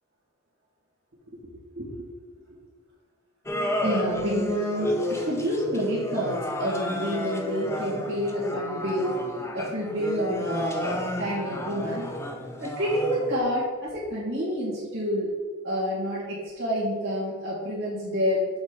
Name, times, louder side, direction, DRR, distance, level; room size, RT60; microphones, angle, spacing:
sound 1, 3.5-13.4, left 1 dB, 10° left, 0.6 m, -32 dB
voice 1, 3.8-9.2 9.5-12.1 12.6-15.3 15.6-18.5, equal, 60° right, -9 dB, 2.1 m, -28 dB
7.0 x 4.2 x 5.2 m, 1.5 s
head